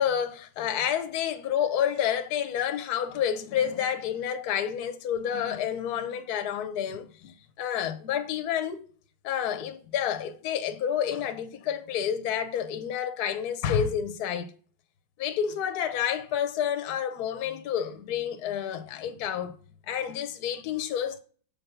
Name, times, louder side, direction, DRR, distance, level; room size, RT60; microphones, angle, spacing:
voice 1, 0.0-8.8 9.2-14.5 15.2-19.6 19.9-21.2, left 9 dB, 60° left, 1.2 m, -29 dB
7.0 x 3.8 x 5.9 m
omnidirectional pair, 2.1 m